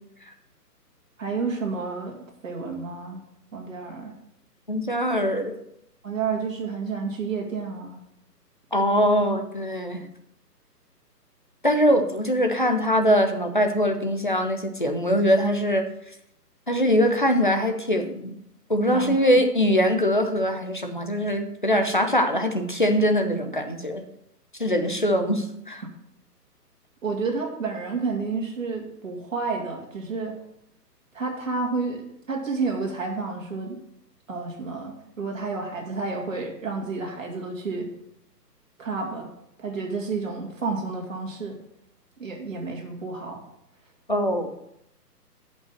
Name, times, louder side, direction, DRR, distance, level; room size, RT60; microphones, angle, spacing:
voice 1, 1.2-2.2 2.4-3.2 3.5-4.1 6.0-8.0 18.9-19.4 27.0-30.3 31.1-33.8 34.3-37.9 38.8-39.3 39.6-41.6 42.2-43.4, right 4 dB, 50° right, 1 dB, 2.5 m, -30 dB
voice 2, 4.7-5.5 8.7-10.0 11.6-15.8 16.7-18.3 18.7-24.0 24.6-25.8 44.1-44.5, equal, 30° left, 5 dB, 0.6 m, -22 dB
7.9 x 5.4 x 7.5 m, 0.78 s
hypercardioid pair, 175°, 49 cm